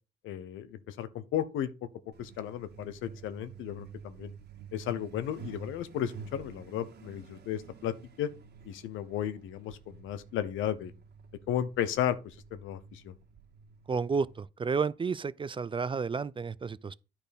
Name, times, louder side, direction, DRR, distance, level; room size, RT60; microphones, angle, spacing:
voice 1, 0.2-1.7 2.2-4.3 4.7-8.3 8.6-10.9 11.5-13.1, left 10 dB, 90° left, 0.9 m, -34 dB
Truck, 2.1-14.4, right 5 dB, 60° right, 1.8 m, -50 dB
voice 2, 13.9-16.9, right 5 dB, 25° right, 0.4 m, -31 dB
10.0 x 4.5 x 5.2 m
cardioid pair, 90°, 20 cm